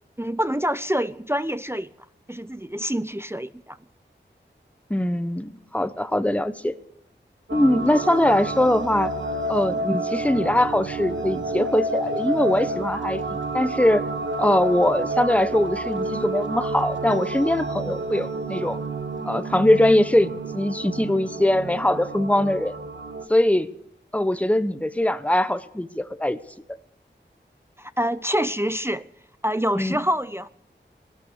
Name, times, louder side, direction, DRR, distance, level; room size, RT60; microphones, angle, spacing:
voice 1, 0.2-1.9 2.3-3.8 27.8-29.0 29.4-30.5, equal, 10° right, 13 dB, 0.6 m, -26 dB
voice 2, 4.9-6.7 7.5-9.1 9.5-14.0 14.4-18.8 19.2-22.8 23.3-23.7 24.1-26.4 29.8-30.0, left 1 dB, 5° left, 12 dB, 0.9 m, -22 dB
sound 1, 7.5-23.3, right 2 dB, 80° right, 1.7 m, -29 dB
17.0 x 12.5 x 6.6 m, 0.79 s
wide cardioid pair, 55°, 20 cm